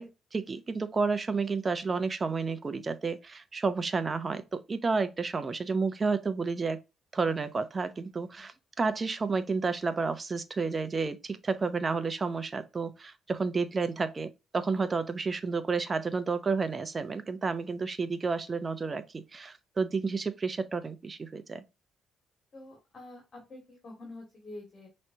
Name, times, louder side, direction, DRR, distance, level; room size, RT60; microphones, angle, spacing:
voice 1, 0.0-6.8 7.1-21.6, right 4 dB, 30° right, 0.7 m, -31 dB
voice 2, 22.5-24.9, left 2 dB, 45° left, 2.2 m, -47 dB
5.8 x 3.2 x 2.7 m
cardioid pair, 90°, 0 cm